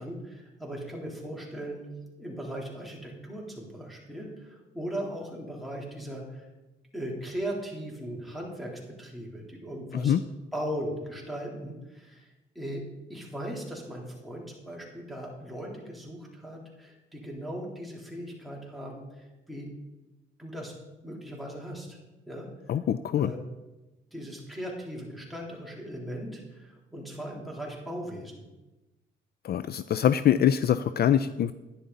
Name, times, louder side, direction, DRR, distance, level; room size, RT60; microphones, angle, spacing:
voice 1, 0.0-1.8 2.2-6.5 6.9-10.2 10.5-12.8 13.1-19.7 20.4-20.7 21.0-22.0 22.3-22.5 23.2-23.4 24.1-28.4, equal, ahead, -3 dB, 3.5 m, -38 dB
voice 2, 22.7-23.3 29.4-31.5, left 10 dB, 55° left, 13 dB, 0.4 m, -24 dB
11.5 x 10.0 x 4.1 m, 1.1 s
cardioid pair, 90°, 20 cm